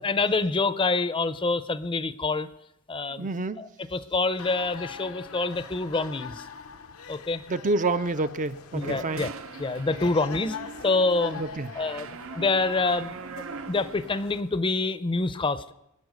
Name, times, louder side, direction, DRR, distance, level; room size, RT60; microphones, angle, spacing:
voice 1, 0.0-2.5 2.9-3.3 3.6-6.4 7.1-7.4 8.7-9.3 9.6-10.6 10.8-11.4 11.7-13.2 13.7-15.7, left 3 dB, 25° left, 13 dB, 0.6 m, -26 dB
voice 2, 3.1-3.6 7.5-9.3 11.4-11.7, right 2 dB, 40° right, 10 dB, 0.5 m, -28 dB
sound 1, 4.4-14.4, left 6 dB, 80° left, 0.8 m, -43 dB
sound 2, 8.8-14.5, right 5 dB, 70° right, 0.7 m, -41 dB
22.5 x 8.7 x 6.6 m, 0.86 s
head